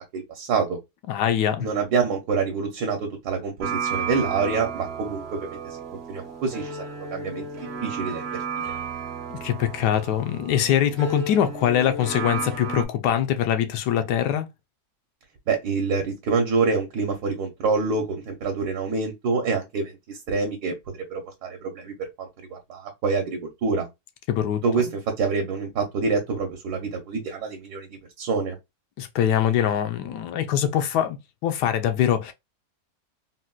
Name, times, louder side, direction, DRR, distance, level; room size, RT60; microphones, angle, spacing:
voice 1, 0.1-0.8 1.6-6.8 7.1-7.4 7.8-8.7 15.5-20.7 21.1-23.9 24.6-27.9 28.2-28.5, right 4 dB, 75° right, 1.3 m, -26 dB
voice 2, 1.1-1.7 9.3-14.5 24.3-24.6 29.0-31.2 31.4-32.3, left 10 dB, 85° left, 1.2 m, -23 dB
sound 1, 3.6-12.8, right 5 dB, 50° right, 0.8 m, -33 dB
4.0 x 2.1 x 2.3 m
omnidirectional pair, 1.7 m